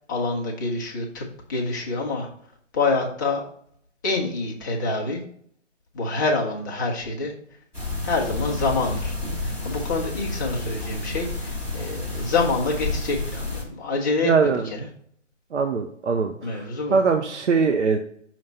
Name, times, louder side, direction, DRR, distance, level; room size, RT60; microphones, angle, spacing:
voice 1, 0.1-2.3 2.7-3.4 4.0-5.2 5.9-7.3 8.0-9.2 9.4-14.3 16.4-17.0, left 3 dB, 15° left, -2 dB, 0.6 m, -26 dB
sound 1, 7.7-13.6, left 2 dB, 5° right, 1.0 m, -30 dB
voice 2, 14.2-14.7 15.5-18.0, right 5 dB, 65° right, 5 dB, 0.7 m, -22 dB
5.8 x 3.1 x 5.4 m, 0.63 s
figure-of-eight pair, 145°, 37 cm